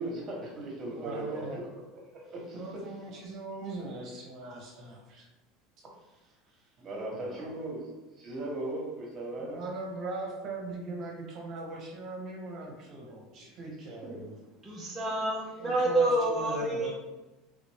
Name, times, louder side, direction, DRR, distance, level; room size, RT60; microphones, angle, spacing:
voice 1, 0.0-1.5 1.9-2.7 6.8-7.9 8.2-9.6 13.6-13.7 14.0-14.1, right 2 dB, 35° right, -1 dB, 1.2 m, -38 dB
voice 2, 0.9-1.6 2.5-5.3 7.1-7.5 9.4-14.3 15.6-16.9, right 3 dB, 55° right, -2 dB, 0.9 m, -40 dB
voice 3, 14.6-16.9, right 1 dB, 15° right, -5 dB, 0.6 m, -28 dB
3.3 x 2.6 x 3.4 m, 1.1 s
supercardioid pair, 105°, 0 cm